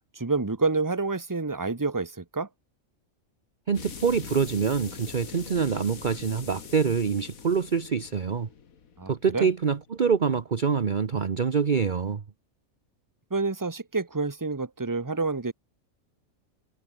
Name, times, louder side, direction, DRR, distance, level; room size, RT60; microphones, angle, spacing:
voice 1, 0.1-2.5 9.0-9.5 13.3-15.5, right 3 dB, 15° right, 1.3 m, -28 dB
sound 1, 3.7-10.2, left 6 dB, 80° left, 2.0 m, -43 dB
voice 2, 3.7-8.5 9.1-12.2, right 6 dB, 40° right, 1.0 m, -25 dB
omnidirectional pair, 1.5 m